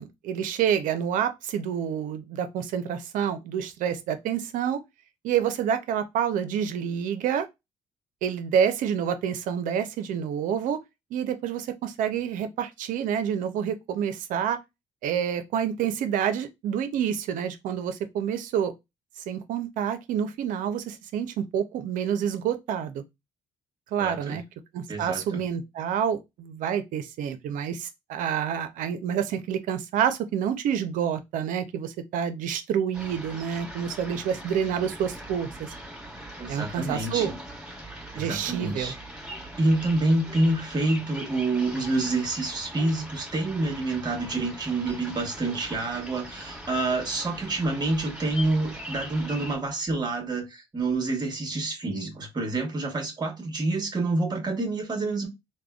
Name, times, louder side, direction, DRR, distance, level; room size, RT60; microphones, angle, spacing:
voice 1, 0.0-4.8 5.2-7.5 8.2-10.8 11.1-14.6 15.0-18.7 19.3-23.0 23.9-24.4 24.7-35.7 36.5-37.3 38.2-38.9, right 8 dB, 75° right, 0.5 m, -28 dB
voice 2, 24.0-24.4 24.9-25.4 36.4-37.3 38.1-39.0 39.6-55.3, right 2 dB, 30° right, 1.1 m, -27 dB
sound 1, 32.9-49.6, equal, 5° right, 1.4 m, -41 dB
3.4 x 2.1 x 2.3 m
supercardioid pair, 75°, 14 cm